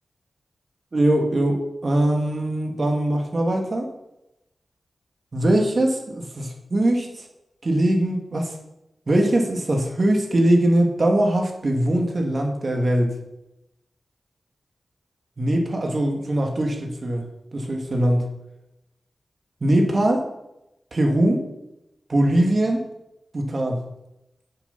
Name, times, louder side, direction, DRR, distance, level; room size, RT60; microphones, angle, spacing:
voice 1, 0.9-3.9 5.3-7.2 7.6-8.5 9.1-13.1 15.4-17.2 17.5-18.3 19.6-20.3 20.9-21.4 22.1-22.8 23.3-23.8, right 1 dB, 55° right, 2 dB, 2.3 m, -21 dB
8.3 x 6.9 x 5.8 m, 0.89 s
cardioid pair, 45°, 0 cm